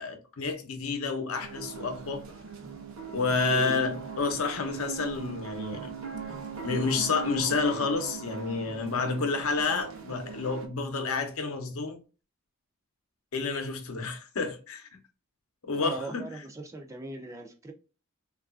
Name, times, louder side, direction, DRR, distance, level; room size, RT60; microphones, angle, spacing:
voice 1, 0.0-2.3 3.1-5.9 6.6-12.0 13.3-14.9 15.6-16.3, left 4 dB, 75° left, 0.7 m, -30 dB
sound 1, 1.4-10.7, right 6 dB, 65° right, 0.6 m, -40 dB
voice 2, 3.5-4.0 15.8-17.7, right 2 dB, 15° right, 0.3 m, -39 dB
3.1 x 2.4 x 2.3 m
head